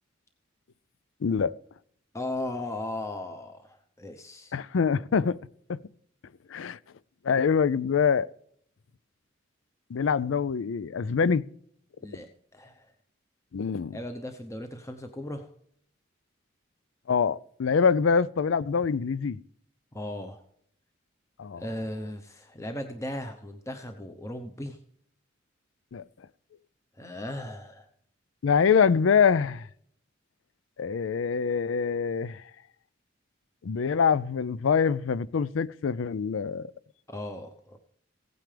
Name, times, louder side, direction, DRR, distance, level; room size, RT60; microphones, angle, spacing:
voice 1, 1.2-1.5 4.5-5.4 5.7-5.8 6.5-6.8 7.2-8.3 9.9-11.4 13.5-14.0 17.1-19.4 21.4-21.6 25.9-26.0 28.4-29.6 30.8-32.4 33.6-36.7, left 6 dB, 90° left, 0.4 m, -24 dB
voice 2, 2.1-4.6 12.0-12.9 13.9-15.5 19.9-20.4 21.5-24.8 27.0-27.9 37.1-37.8, left 1 dB, 15° left, 0.8 m, -37 dB
16.5 x 9.3 x 3.4 m
head